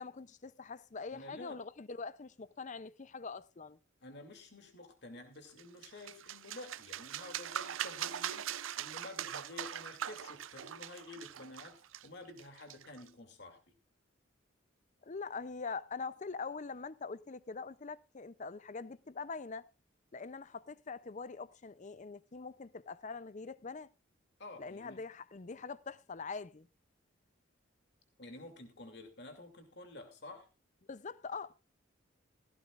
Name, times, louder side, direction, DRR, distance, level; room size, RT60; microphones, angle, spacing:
voice 1, 0.0-3.8 15.0-19.7 20.1-23.9 24.6-26.7 30.9-31.5, left 4 dB, 40° left, 0.6 m, -43 dB
voice 2, 1.1-1.6 4.0-13.6 24.4-25.0 28.2-30.5, left 2 dB, 60° left, 2.6 m, -50 dB
sound 1, 5.6-13.1, right 10 dB, 80° right, 0.5 m, -42 dB
16.0 x 15.5 x 2.5 m
head